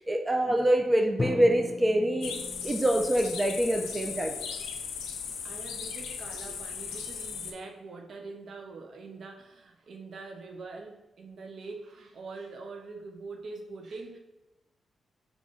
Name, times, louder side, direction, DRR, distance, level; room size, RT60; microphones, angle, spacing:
voice 1, 0.0-2.4 2.6-4.3, right 1 dB, 25° right, 3 dB, 0.6 m, -25 dB
Drum, 1.2-5.0, left 2 dB, 35° left, 0.6 m, -38 dB
sound 1, 2.2-7.5, left 6 dB, 90° left, 0.4 m, -37 dB
voice 2, 5.4-14.2, right 3 dB, 70° right, 3 dB, 0.7 m, -43 dB
3.6 x 3.1 x 3.8 m, 0.98 s
supercardioid pair, 50°, 0 cm